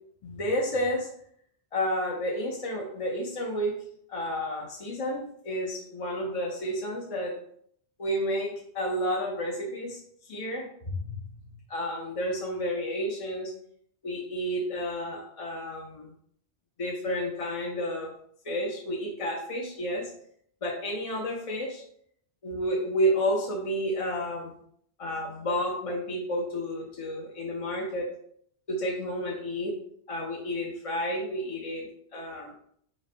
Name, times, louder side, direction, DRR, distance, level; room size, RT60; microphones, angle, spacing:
voice 1, 0.2-1.1 1.7-3.8 4.1-7.3 8.0-10.0 10.3-10.7 11.0-11.3 11.7-13.5 14.0-16.1 16.8-18.2 18.4-20.1 20.6-21.8 22.4-24.5 25.0-28.1 28.7-29.8 30.1-32.5, equal, 45° left, -1 dB, 0.5 m, -31 dB
4.1 x 3.1 x 2.5 m, 0.66 s
omnidirectional pair, 1.1 m